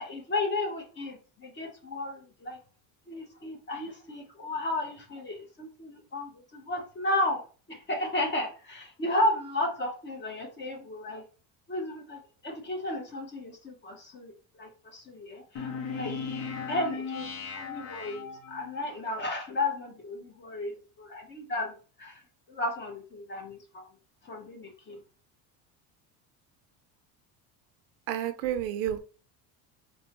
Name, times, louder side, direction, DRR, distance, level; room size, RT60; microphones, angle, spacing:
voice 1, 0.0-2.6 3.1-7.4 7.7-11.2 11.7-16.1 16.7-17.3 17.6-22.2 22.5-23.8 24.2-25.0, left 1 dB, 25° left, 1.0 m, -33 dB
sound 1, 15.5-18.8, left 5 dB, 55° left, 0.8 m, -37 dB
voice 2, 28.1-29.0, right 11 dB, 85° right, 0.6 m, -30 dB
4.3 x 2.2 x 2.9 m
cardioid pair, 135°, 40 cm